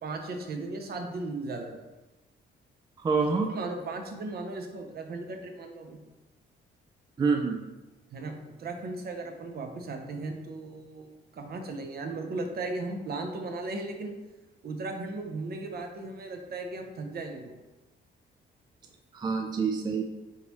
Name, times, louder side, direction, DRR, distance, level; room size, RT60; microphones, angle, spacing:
voice 1, 0.0-1.9 3.5-6.0 8.1-14.1 14.6-17.6, right 3 dB, 50° right, 4 dB, 0.7 m, -36 dB
voice 2, 3.0-3.5 7.2-7.6 19.1-20.0, right 5 dB, 20° right, 2 dB, 0.4 m, -26 dB
3.9 x 3.7 x 3.0 m, 1.1 s
cardioid pair, 90°, 20 cm